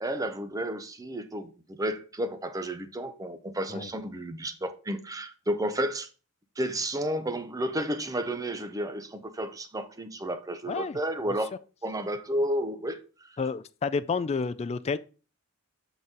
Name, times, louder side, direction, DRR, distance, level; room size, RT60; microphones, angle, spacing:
voice 1, 0.0-1.5 1.8-6.1 6.6-11.5 11.8-13.3, right 1 dB, 15° right, 0.6 m, -32 dB
voice 2, 10.7-11.0 11.3-11.4 13.4-15.0, left 4 dB, 30° left, 0.3 m, -30 dB
7.6 x 4.0 x 3.7 m
head